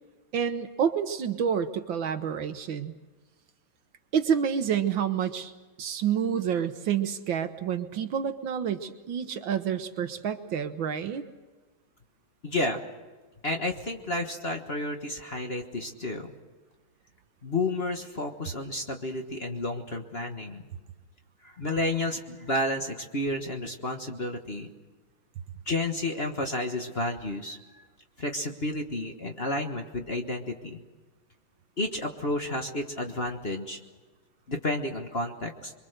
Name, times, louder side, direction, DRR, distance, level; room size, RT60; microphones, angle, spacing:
voice 1, 0.3-2.9 4.1-5.5 5.8-11.2, right 8 dB, 65° right, 9 dB, 1.7 m, -28 dB
voice 2, 12.4-12.8 13.4-16.3 17.4-20.6 21.4-24.7 25.7-27.8 28.2-30.8 31.8-33.8 34.5-35.7, left 2 dB, 30° left, 3 dB, 1.4 m, -31 dB
27.0 x 23.0 x 6.7 m, 1.3 s
omnidirectional pair, 2.3 m